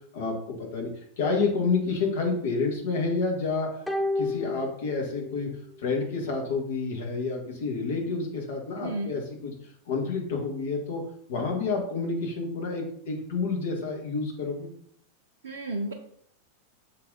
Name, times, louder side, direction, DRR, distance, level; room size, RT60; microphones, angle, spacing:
voice 1, 0.1-0.9 1.2-3.7 4.2-5.5 5.8-11.0 11.3-14.7, left 4 dB, 55° left, 1 dB, 1.7 m, -29 dB
sound 1, 3.9-5.5 5.8-5.9, left 2 dB, 5° left, 0.6 m, -31 dB
voice 2, 8.8-9.1 15.4-15.9, right 1 dB, 60° right, 0 dB, 0.7 m, -32 dB
6.6 x 4.1 x 3.9 m, 0.66 s
figure-of-eight pair, 90°, 0 cm